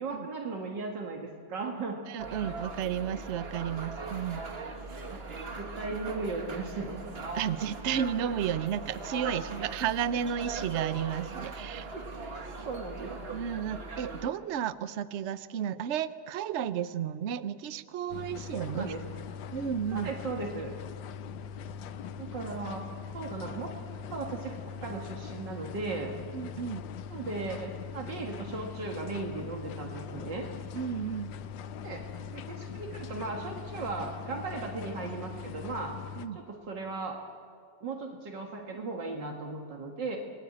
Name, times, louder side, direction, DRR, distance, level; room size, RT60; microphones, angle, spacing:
voice 1, 0.0-2.0 5.1-7.0 9.2-9.3 11.9-12.1 12.7-13.2 18.7-19.1 19.9-20.7 22.2-22.9 23.1-23.7 24.1-26.1 27.1-30.5 31.8-32.1 32.3-36.0 36.4-37.2 37.8-40.2, right 3 dB, 70° right, 2 dB, 2.5 m, -37 dB
voice 2, 2.1-4.4 7.3-11.9 13.3-18.9 19.5-20.1 26.3-26.8 30.7-31.3 36.2-36.4, right 9 dB, 55° right, 14 dB, 0.8 m, -32 dB
sound 1, 2.2-14.3, right 3 dB, 35° right, 1.7 m, -40 dB
sound 2, 18.1-36.3, left 7 dB, 85° left, 1.5 m, -41 dB
27.0 x 20.0 x 8.7 m, 2.2 s
omnidirectional pair, 2.0 m